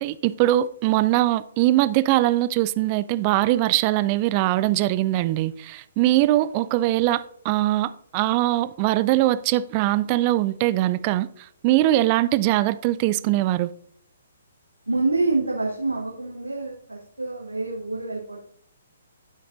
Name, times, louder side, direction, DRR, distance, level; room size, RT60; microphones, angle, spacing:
voice 1, 0.0-11.3 11.6-13.7, right 15 dB, 30° right, 0.3 m, -21 dB
voice 2, 14.9-18.4, right 3 dB, 85° right, 1.0 m, -26 dB
10.0 x 5.8 x 2.5 m
figure-of-eight pair, 130°, 0 cm